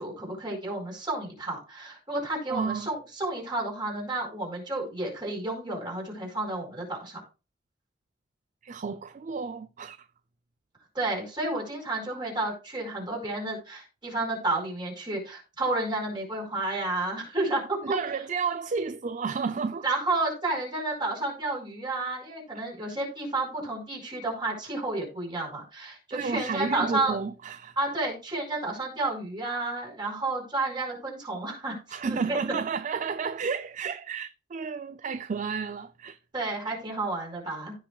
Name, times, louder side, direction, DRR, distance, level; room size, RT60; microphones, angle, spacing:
voice 1, 0.0-7.2 10.9-18.1 19.8-27.2 27.8-31.8 32.0-32.4 36.3-37.7, right 2 dB, 25° right, 4.7 m, -31 dB
voice 2, 2.5-2.9 8.6-10.0 17.8-19.9 26.1-27.8 31.9-36.2, right 5 dB, 45° right, 0.4 m, -31 dB
16.0 x 5.8 x 2.3 m
head